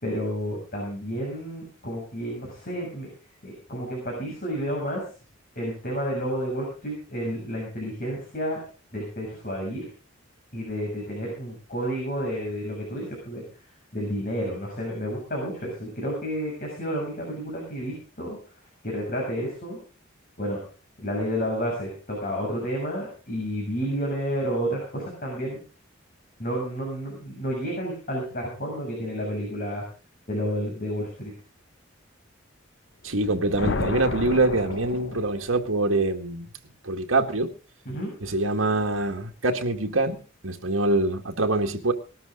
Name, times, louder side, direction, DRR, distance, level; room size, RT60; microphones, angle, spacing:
voice 1, 0.0-3.1 3.4-5.0 5.6-8.6 8.9-9.9 10.5-13.4 13.9-18.4 18.8-19.8 20.4-20.6 21.0-25.6 26.4-29.8 30.3-31.3 37.9-38.1, equal, 45° left, -1 dB, 6.9 m, -30 dB
voice 2, 33.0-36.5 36.8-37.5 38.2-41.9, right 2 dB, 80° right, 5 dB, 1.8 m, -24 dB
sound 1, 33.1-35.7, left 3 dB, 60° left, 0.9 m, -32 dB
20.0 x 13.0 x 3.8 m, 0.36 s
head